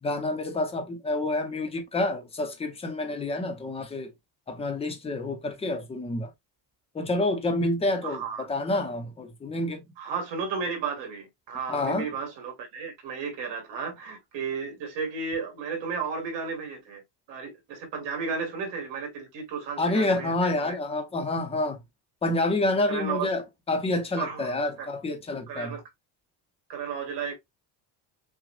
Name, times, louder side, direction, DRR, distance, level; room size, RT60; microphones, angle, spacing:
voice 1, 0.0-4.1 4.5-6.3 6.9-9.9 11.7-12.1 19.8-21.8 22.2-23.4 23.7-25.8, left 2 dB, 15° left, 0.6 m, -28 dB
voice 2, 8.0-8.5 10.0-17.0 17.3-20.8 22.9-23.3 24.2-24.9 25.5-25.8 26.7-27.3, right 5 dB, 75° right, 2.0 m, -33 dB
5.9 x 2.1 x 2.4 m
cardioid pair, 175°, 44 cm